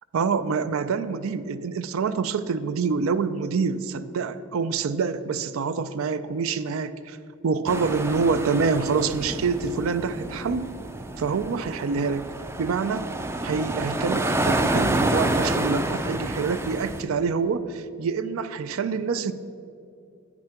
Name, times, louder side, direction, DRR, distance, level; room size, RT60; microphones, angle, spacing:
voice 1, 0.1-7.2 7.4-10.7 11.2-12.3 12.6-13.1 13.4-19.3, right 5 dB, 80° right, 13 dB, 0.4 m, -26 dB
sound 1, 7.7-17.0, right 1 dB, 10° right, 0.3 m, -28 dB
8.8 x 6.1 x 5.8 m, 2.5 s
head